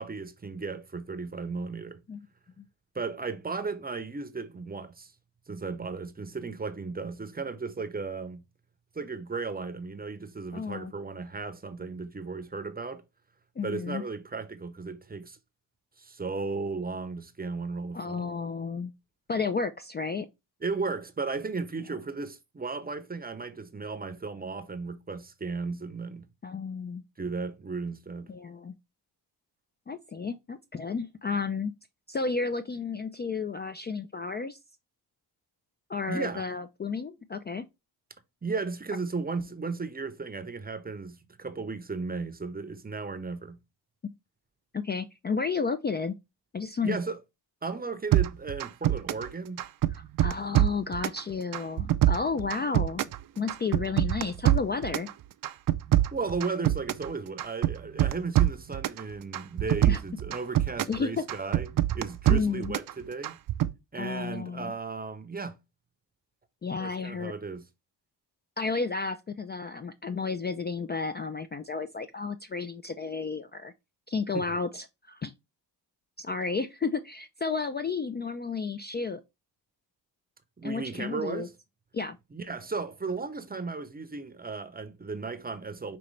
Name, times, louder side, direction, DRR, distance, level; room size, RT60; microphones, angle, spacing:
voice 1, 0.0-2.0 2.9-5.1 5.5-8.4 8.9-13.0 13.6-15.4 16.0-18.3 20.6-26.3 27.2-28.3 36.1-36.5 38.4-43.6 46.8-47.2 47.6-49.6 56.1-61.7 61.9-63.4 63.9-65.6 66.8-67.7 74.3-74.5 80.6-81.5 82.3-86.0, right 4 dB, 20° right, 0.7 m, -35 dB
voice 2, 10.5-10.9 13.6-14.0 17.9-18.9 19.3-20.3 26.4-27.0 28.3-28.7 29.9-31.7 32.1-34.6 35.9-37.6 44.0-44.1 44.7-46.2 46.5-47.0 49.9-53.0 53.4-55.1 59.9-60.0 60.9-61.3 62.3-62.7 63.9-64.7 66.6-67.3 68.6-73.7 74.1-75.3 76.2-79.2 80.6-81.5 81.9-82.2, left 4 dB, 25° left, 0.4 m, -32 dB
sound 1, 48.1-49.3 49.6-51.2 51.5-53.2 53.5-55.1 55.4-57.1 57.4-59.0 59.3-61.0 61.3-62.9 63.2-63.7, right 13 dB, 50° right, 0.5 m, -24 dB
5.2 x 2.9 x 3.1 m
cardioid pair, 70°, 42 cm